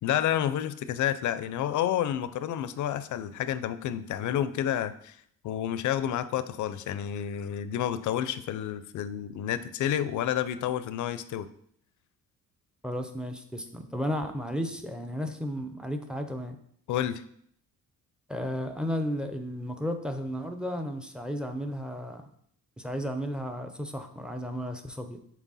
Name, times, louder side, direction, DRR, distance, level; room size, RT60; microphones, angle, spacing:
voice 1, 0.0-5.2 5.4-11.5 16.9-17.2, left 10 dB, 65° left, 13 dB, 0.5 m, -30 dB
voice 2, 12.8-16.6 18.3-22.3 22.8-25.2, equal, 5° right, 6 dB, 0.5 m, -33 dB
6.1 x 4.2 x 4.1 m, 0.66 s
cardioid pair, 140°, 33 cm